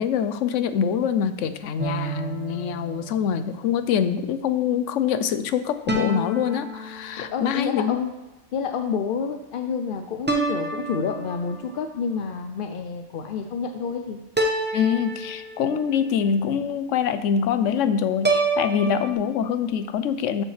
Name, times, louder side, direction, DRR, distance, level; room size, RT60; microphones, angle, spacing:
voice 1, 0.0-8.0 14.7-20.4, left 8 dB, 85° left, 11 dB, 1.0 m, -24 dB
sound 1, 1.8-3.5 5.9-7.6 10.3-11.8 14.4-16.0 18.2-19.1, right 2 dB, 10° right, 0.7 m, -28 dB
voice 2, 7.2-8.1 8.5-14.2, left 5 dB, 60° left, 5 dB, 0.6 m, -29 dB
12.5 x 5.3 x 3.3 m, 1.0 s
omnidirectional pair, 1.3 m